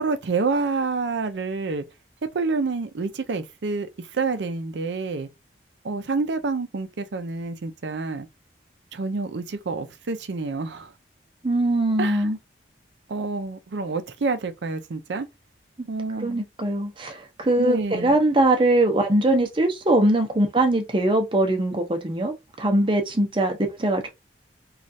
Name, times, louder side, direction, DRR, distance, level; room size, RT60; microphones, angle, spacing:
voice 1, 0.0-1.8 2.3-5.3 5.8-8.3 8.9-10.9 12.0-12.3 13.1-15.3 15.9-16.4 17.6-18.2, right 4 dB, 70° right, 0.5 m, -28 dB
voice 2, 11.4-12.4 16.2-24.1, right 1 dB, 25° right, 0.6 m, -22 dB
3.1 x 2.4 x 2.6 m
head